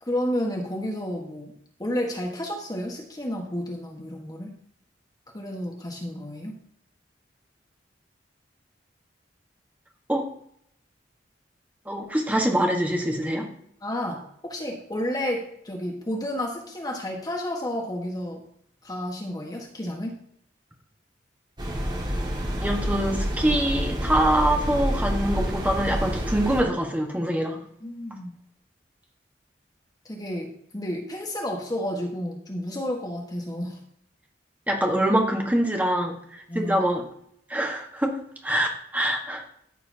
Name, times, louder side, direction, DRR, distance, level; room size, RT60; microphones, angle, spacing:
voice 1, 0.0-4.6 5.3-6.6 13.8-18.4 18.8-20.2 27.8-28.3 30.0-33.8 36.5-36.8, left 1 dB, 20° left, 1 dB, 1.4 m, -31 dB
voice 2, 11.9-13.5 22.6-27.6 34.7-37.0 37.5-39.4, right 1 dB, 10° right, 1 dB, 1.4 m, -24 dB
sound 1, 21.6-26.6, equal, 25° right, 1.8 m, -28 dB
13.5 x 6.9 x 2.8 m, 0.67 s
head